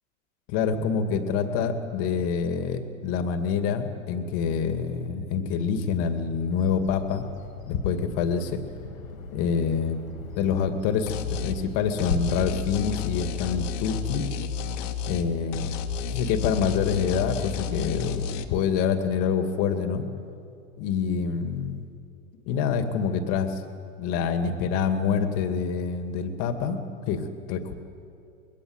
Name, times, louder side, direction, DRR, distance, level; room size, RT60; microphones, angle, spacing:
voice 1, 0.5-7.2 7.7-8.6 9.3-10.0 10.3-14.2 15.1-15.7 16.1-20.0 20.8-21.8 22.5-23.6 24.0-26.8 27.1-27.7, left 6 dB, 35° left, 7 dB, 2.3 m, -26 dB
Bird vocalization bird call bird song, 6.4-12.1, left 7 dB, 90° left, 3.8 m, -38 dB
sound 1, 11.1-11.6 12.0-15.3 15.5-18.4, left 6 dB, 65° left, 2.2 m, -31 dB
26.5 x 22.5 x 8.1 m, 2.5 s
supercardioid pair, 150°, 40 cm